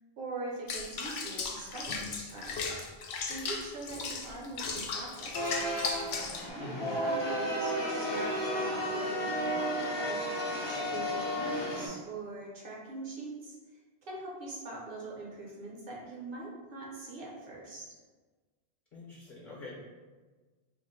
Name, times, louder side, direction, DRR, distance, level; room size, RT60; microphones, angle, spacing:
voice 1, 0.2-2.6 3.3-5.6 6.5-6.7 7.0-10.2 10.7-13.6 14.0-17.9, right 2 dB, 65° right, -3 dB, 1.0 m, -42 dB
Water / Bathtub (filling or washing), 0.7-6.5, left 4 dB, 90° left, 0.8 m, -36 dB
sound 1, 5.3-11.9, equal, 35° left, 0.5 m, -33 dB
voice 2, 6.6-7.0 18.9-19.7, left 1 dB, 55° left, -5 dB, 0.9 m, -44 dB
3.0 x 2.6 x 4.3 m, 1.3 s
omnidirectional pair, 1.0 m